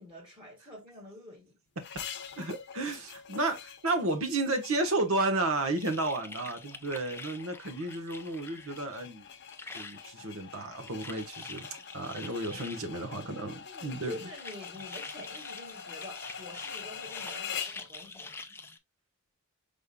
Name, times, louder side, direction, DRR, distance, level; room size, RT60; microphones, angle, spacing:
voice 1, 0.0-1.6 13.6-18.4, left 1 dB, 20° right, 1.8 m, -47 dB
sound 1, 1.8-17.9, left 7 dB, 55° left, 0.8 m, -45 dB
voice 2, 2.4-9.3 9.7-11.7 11.9-14.2, right 2 dB, 70° right, 1.1 m, -32 dB
sound 2, 5.8-9.0 9.2-10.1 10.5-12.9 13.8-18.8, left 3 dB, 10° left, 0.4 m, -46 dB
5.3 x 3.6 x 2.2 m
head